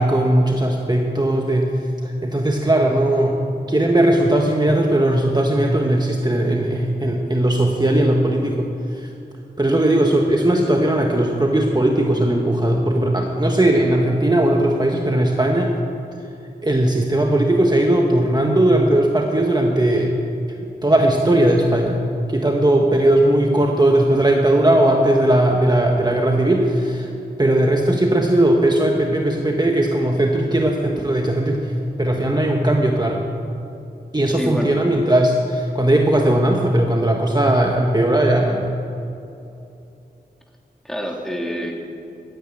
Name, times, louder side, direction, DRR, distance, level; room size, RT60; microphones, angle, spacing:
voice 1, 0.0-1.7 2.0-3.4 3.7-8.7 8.9-9.1 9.6-15.7 16.6-20.1 20.8-22.0 22.3-27.1 27.4-31.7 32.0-33.2 34.1-38.7, right 1 dB, 25° right, 0 dB, 1.3 m, -18 dB
voice 2, 34.3-34.7 40.8-41.7, equal, 5° left, 0 dB, 2.2 m, -27 dB
13.0 x 9.5 x 9.1 m, 2.7 s
wide cardioid pair, 60°, 18 cm